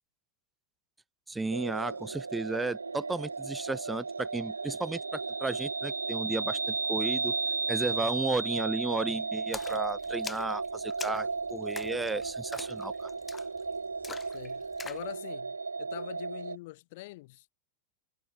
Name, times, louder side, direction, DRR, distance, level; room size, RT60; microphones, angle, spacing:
voice 1, 1.3-7.4 7.7-13.1, right 3 dB, 10° right, 3.5 m, -34 dB
sound 1, 1.5-16.6, right 4 dB, 80° right, 4.4 m, -34 dB
voice 2, 7.7-8.2 14.3-17.5, left 21 dB, 50° left, 4.7 m, -45 dB
Splash splatter, 9.5-15.1, left 5 dB, 15° left, 3.1 m, -45 dB
figure-of-eight pair, 90°, 0 cm